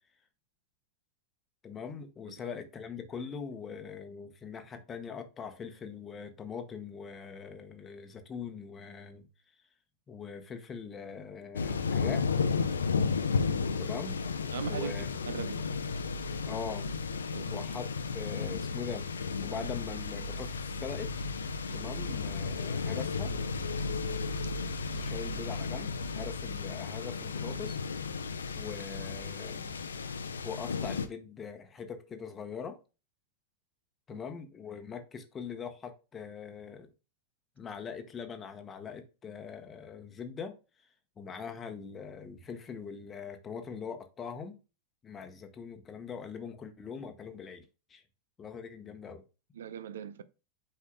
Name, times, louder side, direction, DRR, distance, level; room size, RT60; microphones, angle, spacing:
voice 1, 1.6-9.2 10.1-12.2 13.8-14.2 14.7-15.1 16.5-16.9 17.5-17.9 18.1-19.1 19.4-21.1 21.7-23.3 24.9-27.8 28.5-29.7 30.4-32.8 34.1-36.9 37.6-40.5 41.2-44.5 45.0-48.0 48.4-49.2, left 6 dB, 20° left, 1.1 m, -42 dB
sound 1, 11.6-31.1, left 4 dB, 70° left, 0.7 m, -33 dB
voice 2, 14.5-15.6 17.3-17.6 34.1-34.2 49.5-50.2, right 7 dB, 60° right, 0.6 m, -40 dB
8.3 x 5.7 x 2.2 m
figure-of-eight pair, 90°, 0 cm